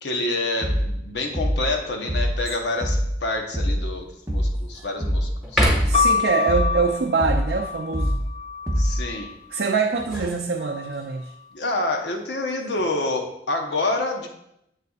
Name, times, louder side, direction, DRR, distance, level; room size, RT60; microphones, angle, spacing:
voice 1, 0.0-5.7 8.8-9.3 11.5-14.3, left 2 dB, 75° left, 3 dB, 0.9 m, -27 dB
sound 1, 0.6-1.0 1.3-1.7 2.1-2.5 2.8-3.2 3.5-3.9 4.3-4.6 5.0-5.4 5.7-6.1 6.5-6.8 7.2-7.6 7.9-8.3 8.7-9.1, equal, 20° right, 0.8 m, -24 dB
sound 2, 2.4-2.9 3.5-3.6 4.1-4.9 5.4-6.2 9.7-11.1 12.4-13.0, equal, ahead, 1.4 m, -27 dB
voice 2, 5.8-8.2 9.5-11.3, right 4 dB, 70° right, 2 dB, 0.5 m, -24 dB
sound 3, 5.9-9.8 10.6-11.3, left 6 dB, 35° left, 0.4 m, -27 dB
7.5 x 6.6 x 2.4 m, 0.79 s
head